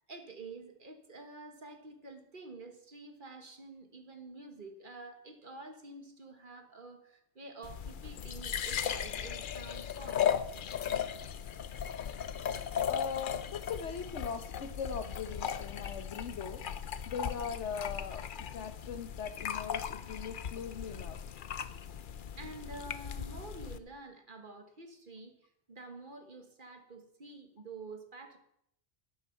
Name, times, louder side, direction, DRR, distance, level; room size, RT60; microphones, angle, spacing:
voice 1, 0.1-10.3 22.4-28.4, right 3 dB, 45° right, 6 dB, 1.5 m, -49 dB
sound 1, 7.6-23.8, left 8 dB, 55° left, 0.7 m, -37 dB
voice 2, 12.9-16.6 17.1-21.2, left 6 dB, 85° left, 10 dB, 1.3 m, -40 dB
11.0 x 9.5 x 5.7 m, 0.72 s
omnidirectional pair, 1.2 m